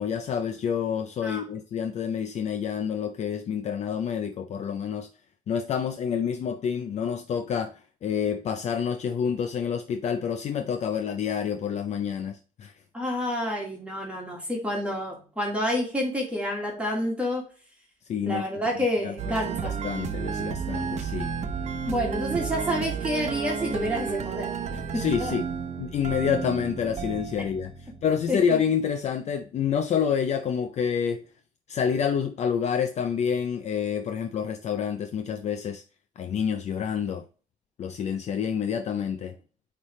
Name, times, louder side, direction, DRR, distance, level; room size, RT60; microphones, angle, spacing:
voice 1, 0.0-5.1 5.5-12.7 18.1-18.4 19.0-19.1 19.6-21.3 24.9-25.4 25.8-31.2 31.7-35.8 36.2-37.2 37.8-39.3, left 7 dB, 50° left, 0.4 m, -28 dB
voice 2, 12.9-17.4 18.2-19.7 21.8-24.5 25.2-25.3 28.3-28.6, equal, 10° right, 1.6 m, -29 dB
sound 1, 19.2-28.3, right 6 dB, 55° right, 0.7 m, -32 dB
9.6 x 3.2 x 3.1 m
wide cardioid pair, 175°, 14 cm